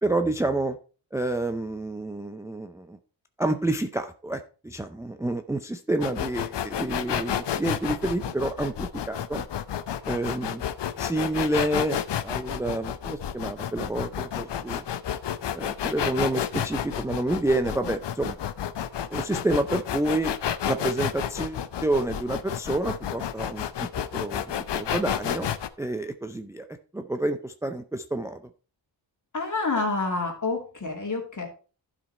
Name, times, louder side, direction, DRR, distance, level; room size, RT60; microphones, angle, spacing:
voice 1, 0.0-0.8 1.1-3.0 3.4-9.4 10.1-10.6 11.0-14.8 15.5-18.4 19.1-20.4 20.7-26.7 26.9-28.4, right 2 dB, 5° right, 8 dB, 0.5 m, -29 dB
sound 1, 6.0-25.7, left 9 dB, 65° left, 0.7 m, -30 dB
voice 2, 29.3-31.5, left 3 dB, 40° left, 1 dB, 2.7 m, -28 dB
12.0 x 5.2 x 4.2 m, 0.37 s
wide cardioid pair, 95°, 45 cm